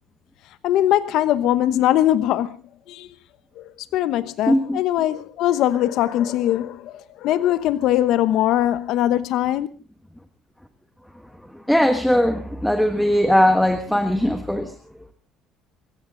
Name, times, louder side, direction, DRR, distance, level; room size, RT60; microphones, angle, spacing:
voice 1, 0.6-2.6 2.9-3.1 3.6-9.7, left 12 dB, 60° left, 1.0 m, -21 dB
voice 2, 4.5-4.8 11.5-14.7, equal, ahead, 1.4 m, -19 dB
24.0 x 14.5 x 3.9 m
cardioid pair, 140°, 0 cm